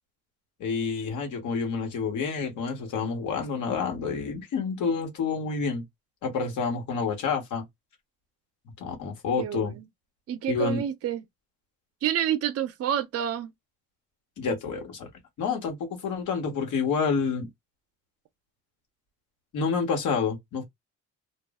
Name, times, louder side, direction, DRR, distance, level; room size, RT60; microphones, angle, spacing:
voice 1, 0.6-5.8 6.2-7.6 8.8-9.8 10.5-10.8 14.4-15.1 15.4-17.5 19.5-20.6, left 5 dB, 80° left, 1.1 m, -28 dB
voice 2, 9.4-9.8 10.3-11.2 12.0-13.5, right 10 dB, 55° right, 0.5 m, -28 dB
2.3 x 2.0 x 3.5 m
cardioid pair, 90°, 30 cm